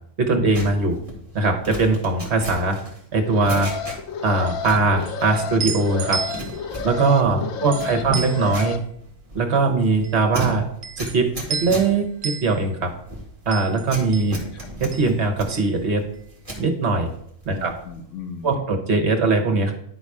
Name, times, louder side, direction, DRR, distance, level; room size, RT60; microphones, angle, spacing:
voice 1, 0.2-1.0 1.3-2.8 3.1-3.7 4.2-6.2 6.8-8.8 9.3-10.6 11.0-12.9 13.5-14.4 14.8-16.0 16.6-17.1 17.5-17.7 18.4-19.7, right 3 dB, 55° right, 3 dB, 1.5 m, -21 dB
sound 1, 0.5-4.3 4.6-5.8 6.1-16.7 17.1-17.9 18.2-18.5, right 1 dB, 25° right, 1.9 m, -36 dB
Alarm, 3.1-8.8, left 6 dB, 85° left, 1.1 m, -32 dB
sound 2, 4.4-16.6 16.9-18.0, right 6 dB, 70° right, 0.4 m, -34 dB
voice 2, 7.3-8.6 14.1-14.7 17.5-18.7, left 5 dB, 65° left, 4 dB, 1.3 m, -39 dB
10.5 x 4.1 x 4.8 m, 0.69 s
omnidirectional pair, 1.4 m